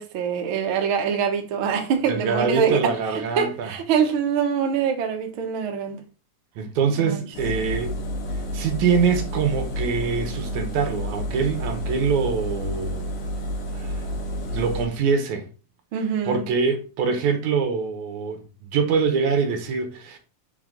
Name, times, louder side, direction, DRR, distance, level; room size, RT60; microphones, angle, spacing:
voice 1, 0.0-2.9 3.4-6.0 7.0-7.2 15.9-16.5, right 7 dB, 60° right, 1.5 m, -24 dB
voice 2, 2.1-3.7 6.6-8.0 8.5-13.0 13.7-14.0 14.3-15.5 16.2-20.2, right 5 dB, 75° right, 2.3 m, -24 dB
Engine, 7.3-14.8, equal, 60° left, 2.6 m, -30 dB
7.6 x 4.1 x 3.8 m
omnidirectional pair, 3.5 m